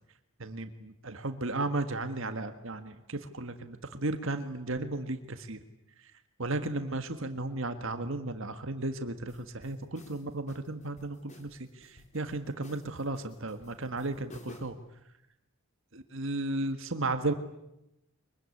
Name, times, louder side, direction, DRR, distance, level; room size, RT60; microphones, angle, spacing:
voice 1, 0.4-5.6 6.4-14.8 15.9-17.3, right 2 dB, 60° right, 8 dB, 1.7 m, -34 dB
sound 1, 9.3-14.9, left 1 dB, 30° left, 3.5 m, -53 dB
24.0 x 23.0 x 9.8 m, 0.87 s
head